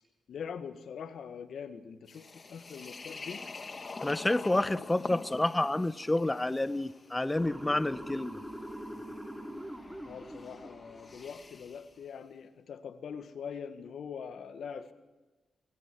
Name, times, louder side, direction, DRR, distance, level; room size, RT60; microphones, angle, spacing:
voice 1, 0.3-3.4 10.0-14.9, left 7 dB, 70° left, 1.6 m, -43 dB
sound 1, 2.1-11.9, left 3 dB, 45° left, 2.2 m, -46 dB
voice 2, 4.0-8.4, left 2 dB, 20° left, 1.1 m, -29 dB
Motor vehicle (road) / Siren, 7.3-11.5, equal, 10° right, 4.0 m, -43 dB
24.0 x 24.0 x 4.6 m
supercardioid pair, 50°, 0 cm